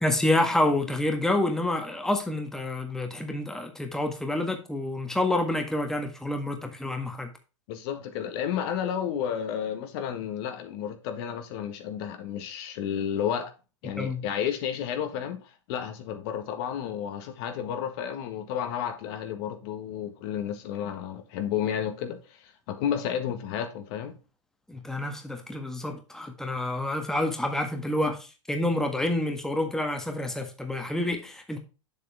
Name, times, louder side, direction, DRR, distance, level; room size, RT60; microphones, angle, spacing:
voice 1, 0.0-7.3 14.0-14.2 24.7-31.6, left 1 dB, 5° left, 1.5 m, -28 dB
voice 2, 7.7-13.5 13.8-24.1, left 9 dB, 50° left, 1.6 m, -32 dB
7.3 x 6.9 x 3.4 m
hypercardioid pair, 120°, 16 cm